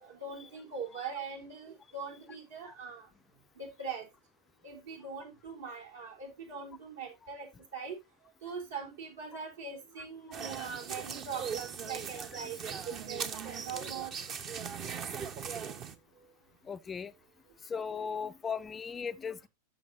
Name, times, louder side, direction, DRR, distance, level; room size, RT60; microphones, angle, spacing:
voice 1, 0.0-3.1 3.6-4.1 4.6-7.5 7.7-8.0 8.4-14.1, right 5 dB, 65° right, 3.8 m, -41 dB
sound 1, 10.3-15.9, right 6 dB, 30° right, 0.9 m, -39 dB
voice 2, 16.6-17.1 17.6-19.5, left 6 dB, 20° left, 0.4 m, -37 dB
13.0 x 6.3 x 2.6 m
figure-of-eight pair, 90°, 0 cm